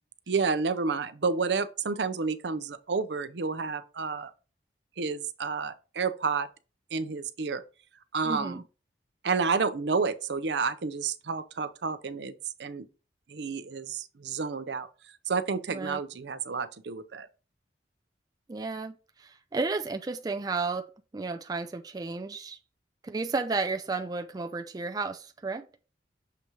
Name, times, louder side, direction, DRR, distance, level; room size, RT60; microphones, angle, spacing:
voice 1, 0.3-4.3 5.0-6.5 6.9-7.6 8.1-8.6 9.2-12.3 12.6-12.9 13.3-14.9 15.3-17.3, right 5 dB, 75° right, 0.6 m, -30 dB
voice 2, 8.2-8.6 15.7-16.0 18.5-20.8 21.1-22.6 23.0-25.6, right 3 dB, 20° right, 0.4 m, -32 dB
6.8 x 3.0 x 4.9 m
head